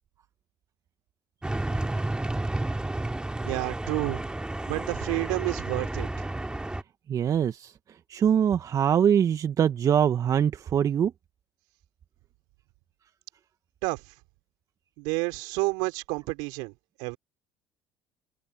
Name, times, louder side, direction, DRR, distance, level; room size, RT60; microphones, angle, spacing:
sound 1, 1.4-6.8, right 2 dB, 10° right, 2.8 m, -31 dB
voice 1, 3.4-4.2 4.7-6.1 13.8-14.0 15.0-16.7 17.0-17.2, right 29 dB, 70° right, 3.9 m, -30 dB
voice 2, 7.1-7.7 8.1-11.1, right 8 dB, 45° right, 1.6 m, -23 dB
hypercardioid pair, 60°, 8 cm